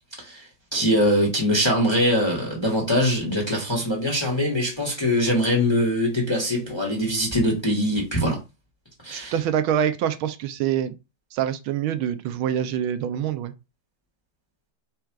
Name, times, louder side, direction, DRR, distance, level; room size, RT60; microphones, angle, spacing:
voice 1, 0.7-8.4 9.0-9.3, equal, 15° left, 1.1 m, -22 dB
voice 2, 9.1-10.9 11.3-13.5, right 9 dB, 80° right, 1.4 m, -25 dB
4.3 x 2.4 x 4.5 m
omnidirectional pair, 2.2 m